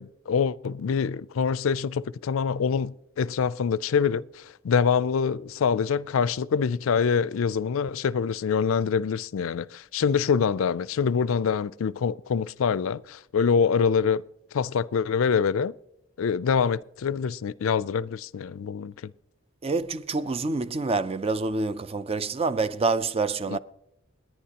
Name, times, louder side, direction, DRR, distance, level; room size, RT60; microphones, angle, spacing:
voice 1, 0.0-14.2 14.5-15.7 16.2-19.1, left 6 dB, 80° left, 0.4 m, -25 dB
voice 2, 19.6-23.6, right 3 dB, 30° right, 0.4 m, -27 dB
28.5 x 9.9 x 2.9 m
head